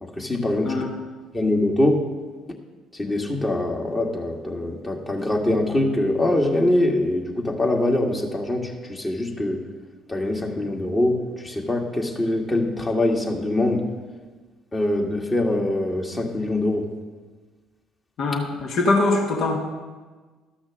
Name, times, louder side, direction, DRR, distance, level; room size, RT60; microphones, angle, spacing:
voice 1, 0.0-0.8 1.3-2.0 3.0-9.6 10.1-13.8 14.7-16.9, left 1 dB, 25° left, 0 dB, 2.0 m, -23 dB
voice 2, 18.2-19.6, left 2 dB, 60° left, 2 dB, 1.4 m, -22 dB
13.0 x 6.1 x 6.3 m, 1.4 s
hypercardioid pair, 55°, 0 cm